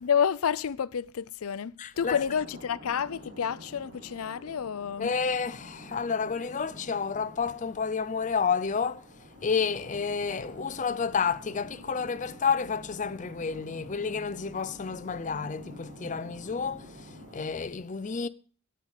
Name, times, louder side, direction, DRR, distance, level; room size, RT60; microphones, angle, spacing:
voice 1, 0.0-5.1, left 7 dB, 85° left, 0.5 m, -29 dB
voice 2, 1.8-2.2 5.0-9.1 9.4-18.3, left 5 dB, 35° left, 0.5 m, -30 dB
sound 1, 1.9-17.6, equal, 45° right, 5.0 m, -48 dB
11.0 x 8.8 x 8.0 m
head